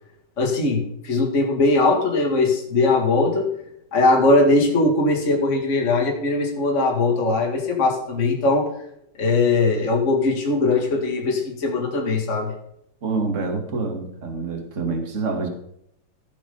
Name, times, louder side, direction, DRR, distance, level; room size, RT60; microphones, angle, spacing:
voice 1, 0.4-3.5 3.9-8.7 9.2-12.5, left 2 dB, 35° left, 0 dB, 2.3 m, -20 dB
voice 2, 13.0-15.5, right 3 dB, 35° right, 3 dB, 2.3 m, -26 dB
16.5 x 6.2 x 5.5 m, 0.74 s
omnidirectional pair, 2.4 m